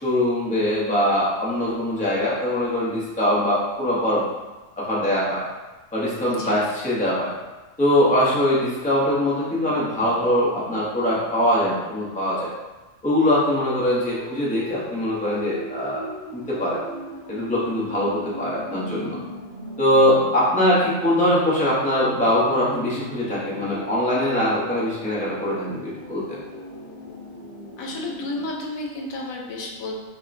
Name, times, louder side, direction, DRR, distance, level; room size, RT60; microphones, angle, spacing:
voice 1, 0.0-4.3 4.8-5.4 5.9-7.3 7.8-12.5 13.0-16.1 16.3-16.8 17.3-19.2 19.8-26.4, left 1 dB, 10° left, -7 dB, 0.5 m, -22 dB
voice 2, 6.3-6.6 27.8-30.0, left 2 dB, 85° left, -1 dB, 1.1 m, -32 dB
sound 1, 14.2-28.5, equal, 50° left, 0.7 m, -38 dB
5.3 x 2.1 x 2.6 m, 1.2 s
omnidirectional pair, 1.4 m